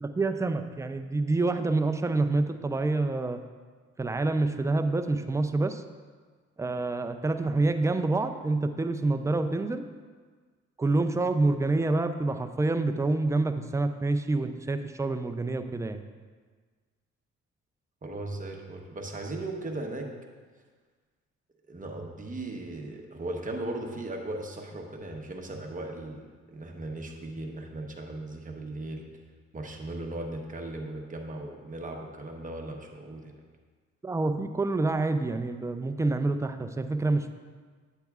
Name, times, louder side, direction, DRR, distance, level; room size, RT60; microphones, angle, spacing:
voice 1, 0.0-3.4 4.0-5.8 6.6-9.8 10.8-16.0 34.0-37.3, right 2 dB, 10° right, 7 dB, 0.4 m, -27 dB
voice 2, 18.0-20.1 21.7-29.1 29.5-33.3, right 2 dB, 25° right, 1 dB, 1.0 m, -37 dB
9.1 x 8.0 x 2.4 m, 1.5 s
cardioid pair, 90°, 30 cm